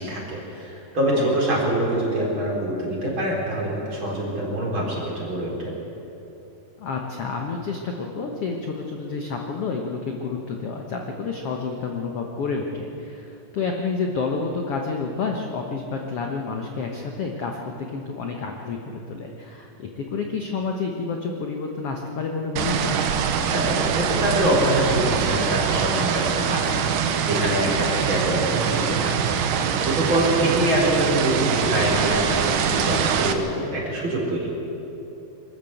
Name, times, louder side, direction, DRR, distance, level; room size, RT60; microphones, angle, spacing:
voice 1, 0.0-5.7 23.5-29.2 29.8-34.5, right 1 dB, 35° right, -3 dB, 4.6 m, -25 dB
voice 2, 0.9-1.4 6.8-23.0 27.7-28.1, left 4 dB, 60° left, 2 dB, 1.6 m, -29 dB
sound 1, 22.6-33.3, right 7 dB, 70° right, 2.4 m, -23 dB
24.0 x 13.5 x 8.1 m, 3.0 s
omnidirectional pair, 4.1 m